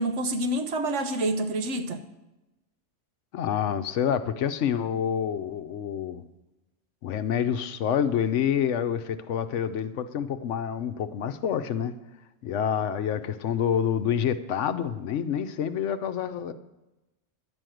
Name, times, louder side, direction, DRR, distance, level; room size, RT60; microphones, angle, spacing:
voice 1, 0.0-2.0, right 1 dB, 75° right, 1.2 m, -27 dB
voice 2, 3.3-6.2 7.0-11.9 12.4-16.5, left 8 dB, 75° left, 1.0 m, -27 dB
11.0 x 6.3 x 9.0 m
omnidirectional pair, 1.3 m